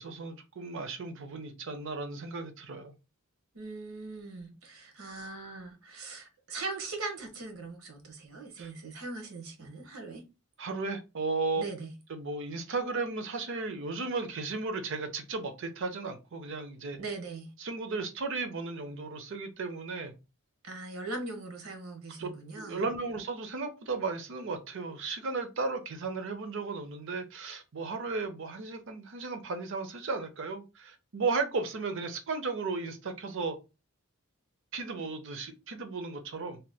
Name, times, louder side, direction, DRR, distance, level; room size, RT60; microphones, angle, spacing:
voice 1, 0.0-2.9 8.6-8.7 10.6-11.6 12.1-17.0 17.6-20.1 22.2-22.3 22.5-33.6 34.7-36.6, right 4 dB, 60° right, 0.6 m, -35 dB
voice 2, 3.5-10.3 11.6-11.9 17.0-17.5 20.6-22.8, right 3 dB, 80° right, 1.0 m, -40 dB
2.8 x 2.2 x 3.4 m
head